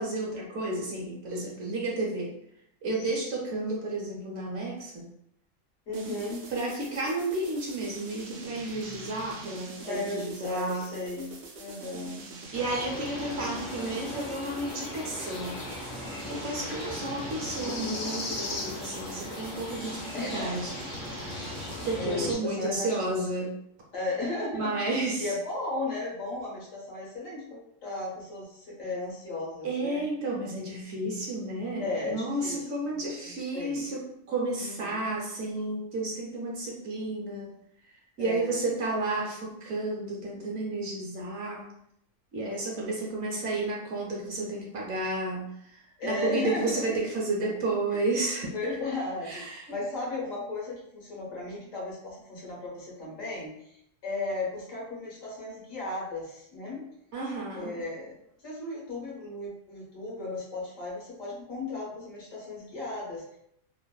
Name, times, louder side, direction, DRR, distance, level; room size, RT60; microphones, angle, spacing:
voice 1, 0.0-2.3 2.8-5.1 6.5-10.9 12.5-15.7 16.3-20.7 21.8-23.6 24.5-25.3 29.6-37.5 38.2-41.7 42.3-48.5 49.2-49.7 57.1-57.8, right 2 dB, 60° right, -2 dB, 0.9 m, -32 dB
voice 2, 5.9-6.4 9.8-12.2 17.6-18.2 20.1-20.5 22.0-23.0 23.9-30.0 31.8-32.6 32.9-33.9 34.6-35.1 38.2-38.7 42.8-42.9 46.0-47.0 47.4-47.5 48.1-48.2 48.5-56.8 57.5-58.1 58.4-63.4, left 2 dB, 85° left, -4 dB, 1.4 m, -35 dB
sound 1, 5.9-22.1, right 3 dB, 80° right, 0.4 m, -44 dB
sound 2, 12.5-22.4, left 2 dB, 55° left, 0.6 m, -38 dB
3.2 x 2.1 x 2.2 m, 0.75 s
omnidirectional pair, 1.4 m